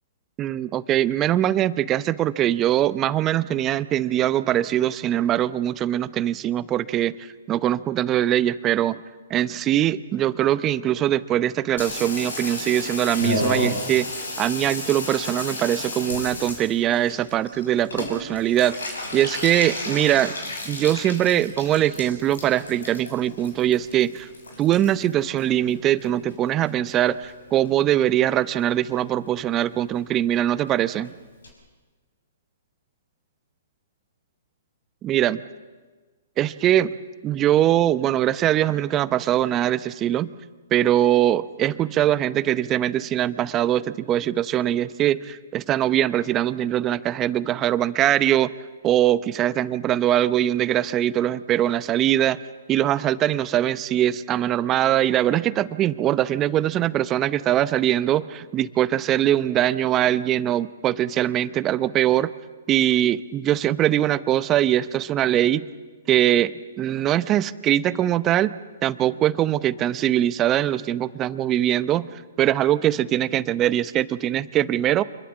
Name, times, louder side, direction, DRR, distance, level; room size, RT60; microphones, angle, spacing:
voice 1, 0.4-7.2 7.5-9.0 9.3-18.8 19.1-20.3 20.6-24.3 24.6-31.1 35.0-35.4 36.4-36.9 37.2-40.3 40.7-48.5 48.8-52.4 52.7-62.3 62.7-65.6 66.1-68.5 68.8-72.1 72.4-75.0, right 12 dB, 25° right, 15 dB, 0.7 m, -22 dB
Water tap faucet / Bathtub (filling or washing), 11.8-26.3 26.6-27.3 27.7-27.8 28.0-28.1 28.3-28.7 28.9-29.0 29.3-29.4 29.6-29.7 30.0-30.1 30.3-30.4 30.7-30.8 31.0-31.1 31.4-31.5, left 2 dB, 80° left, 5.9 m, -33 dB
26.0 x 21.5 x 7.2 m, 1.3 s
hypercardioid pair, 125°, 0 cm